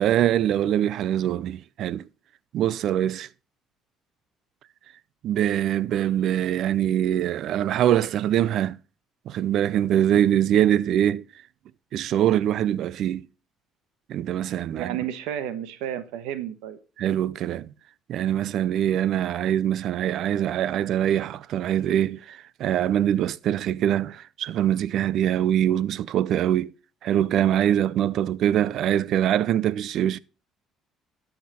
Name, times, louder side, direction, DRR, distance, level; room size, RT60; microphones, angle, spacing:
voice 1, 0.0-2.0 2.5-3.3 5.2-8.8 9.3-11.2 11.9-13.3 14.1-15.0 17.0-17.7 18.1-26.7 27.0-30.2, right 11 dB, 65° right, 0.5 m, -23 dB
voice 2, 14.7-16.8, right 10 dB, 85° right, 1.2 m, -32 dB
12.5 x 5.9 x 4.2 m
supercardioid pair, 85°, 0 cm